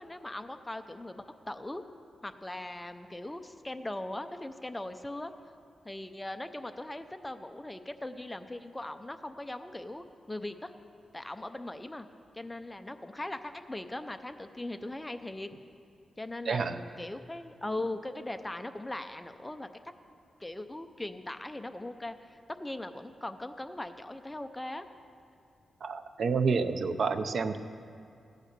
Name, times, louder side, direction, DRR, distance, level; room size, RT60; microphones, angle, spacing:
voice 1, 0.0-1.8 2.2-5.3 5.8-10.7 11.1-12.1 12.3-15.5 16.2-19.7 20.4-24.8, left 1 dB, 10° left, 8 dB, 0.5 m, -39 dB
voice 2, 16.5-16.8 25.8-27.6, right 5 dB, 50° right, 10 dB, 0.6 m, -29 dB
16.0 x 10.0 x 6.7 m, 2.5 s
wide cardioid pair, 170°, 0 cm